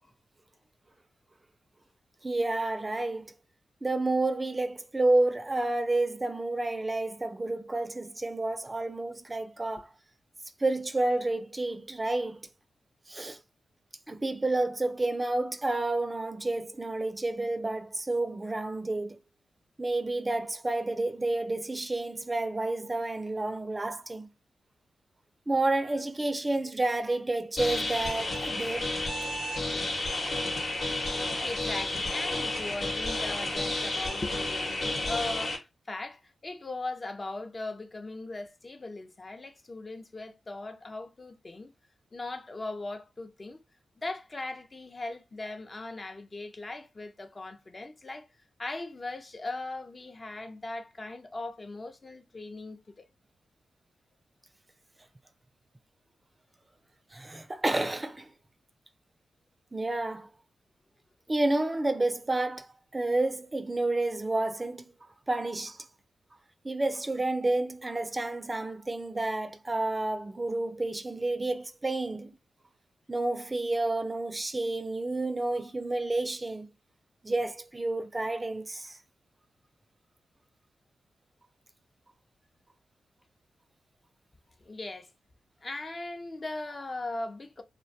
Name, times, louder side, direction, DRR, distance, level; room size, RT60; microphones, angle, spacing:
voice 1, 2.2-3.3 3.8-9.9 10.6-12.4 13.1-13.4 14.1-19.2 19.8-24.3 25.5-28.9 57.1-58.3 59.7-60.3 61.3-62.7 62.9-64.8 65.3-65.8 66.6-72.3 73.1-76.7 77.2-79.0, right 2 dB, 30° right, 0.3 m, -30 dB
sound 1, 27.6-35.6, left 2 dB, 65° left, 1.0 m, -31 dB
voice 2, 31.4-41.7 42.1-43.6 44.0-48.3 48.6-53.1 84.6-85.1 85.6-87.6, left 2 dB, 40° left, 0.4 m, -39 dB
2.2 x 2.2 x 2.6 m
supercardioid pair, 40°, 0 cm